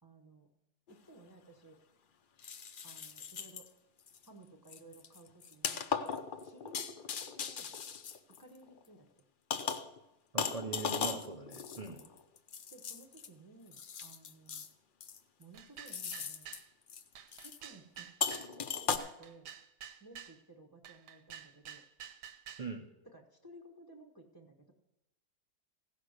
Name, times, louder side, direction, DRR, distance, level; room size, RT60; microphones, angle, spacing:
voice 1, 0.0-0.5 0.9-1.8 2.8-3.7 4.3-5.8 6.4-7.7 8.3-9.2 11.8-12.1 12.7-14.7 15.4-16.5 17.3-19.5 20.0-21.8 23.0-24.7, right 2 dB, 20° right, 2 dB, 0.8 m, -57 dB
sound 1, 0.9-1.0 2.4-3.7 4.1-4.3 4.7-8.8 9.5-10.0 10.4-13.3 13.7-14.7 15.0-15.4 15.9-16.6 16.9-17.0 17.3-17.6 18.2-19.0, left 6 dB, 65° left, 0.5 m, -38 dB
voice 2, 10.3-12.0 22.6-22.9, right 4 dB, 65° right, 3 dB, 0.3 m, -41 dB
sound 2, 15.5-16.7 17.2-18.5 19.0-20.4 20.8-22.7, right 9 dB, 85° right, 1.4 m, -50 dB
15.5 x 5.9 x 6.5 m, 0.93 s
omnidirectional pair, 1.7 m